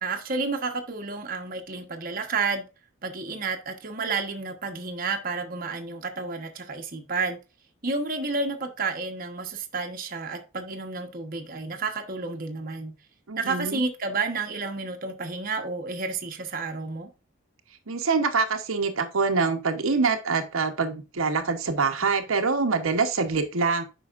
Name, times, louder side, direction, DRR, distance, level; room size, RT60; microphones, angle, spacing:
voice 1, 0.0-2.6 3.0-7.4 7.8-12.9 13.4-17.1, right 4 dB, 45° right, 1.1 m, -31 dB
voice 2, 13.3-13.8 17.9-23.8, right 4 dB, 90° right, 1.0 m, -25 dB
8.5 x 5.6 x 2.5 m
head